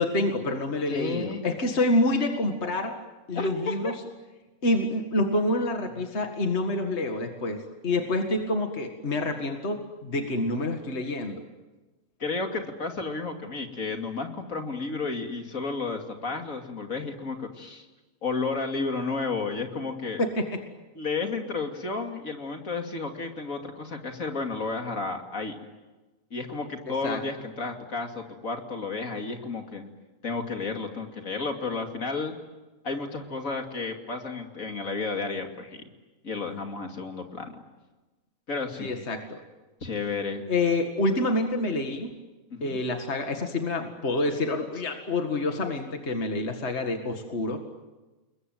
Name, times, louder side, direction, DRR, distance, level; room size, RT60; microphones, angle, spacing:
voice 1, 0.0-2.9 3.3-3.9 4.6-11.4 20.2-20.4 27.0-27.2 38.8-39.4 40.5-42.1 42.6-47.6, left 2 dB, 50° left, 4 dB, 2.2 m, -27 dB
voice 2, 0.9-1.5 3.3-3.9 12.2-17.9 18.2-20.2 20.9-25.6 26.3-29.9 30.2-32.3 32.8-35.8 36.2-37.6 38.5-38.9 39.8-40.4 42.5-42.8, left 4 dB, 65° left, 4 dB, 3.0 m, -32 dB
29.0 x 22.0 x 9.3 m, 1.2 s
omnidirectional pair, 1.5 m